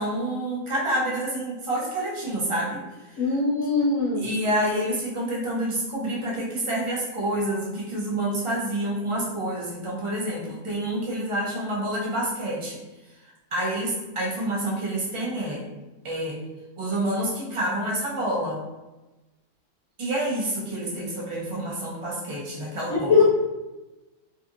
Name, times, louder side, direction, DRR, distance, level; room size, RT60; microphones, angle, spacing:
voice 1, 0.0-3.2 4.2-12.8 13.5-15.6 16.0-16.4 16.8-18.6 20.0-23.2, right 1 dB, 50° right, -5 dB, 0.3 m, -28 dB
voice 2, 3.2-4.3 22.9-23.2, left 4 dB, 75° left, -4 dB, 0.9 m, -21 dB
2.6 x 2.6 x 2.5 m, 1.1 s
omnidirectional pair, 1.4 m